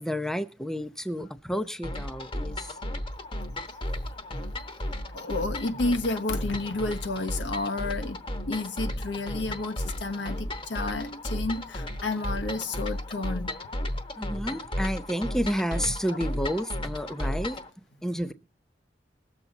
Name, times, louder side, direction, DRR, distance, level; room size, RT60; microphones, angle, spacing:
voice 1, 0.0-2.7 14.2-17.6 18.0-18.3, equal, 5° left, 0.5 m, -30 dB
sound 1, 1.8-17.7, left 1 dB, 30° left, 1.0 m, -34 dB
voice 2, 5.1-8.2 8.5-13.5 13.9-14.0, left 2 dB, 85° left, 1.2 m, -31 dB
20.5 x 7.2 x 4.0 m
head